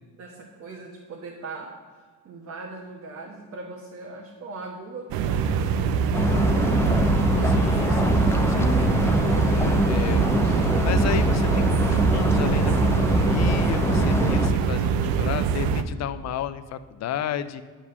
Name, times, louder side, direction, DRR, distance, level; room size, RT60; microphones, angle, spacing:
voice 1, 0.1-1.7 2.2-6.9, right 3 dB, 45° right, -1 dB, 1.4 m, -40 dB
sound 1, 5.1-15.8, right 6 dB, 70° right, 0.7 m, -24 dB
sound 2, 6.1-14.5, left 1 dB, 5° left, 0.6 m, -23 dB
voice 2, 7.4-17.6, left 9 dB, 45° left, 13 dB, 0.6 m, -33 dB
10.0 x 5.0 x 6.8 m, 1.5 s
cardioid pair, 130°, 37 cm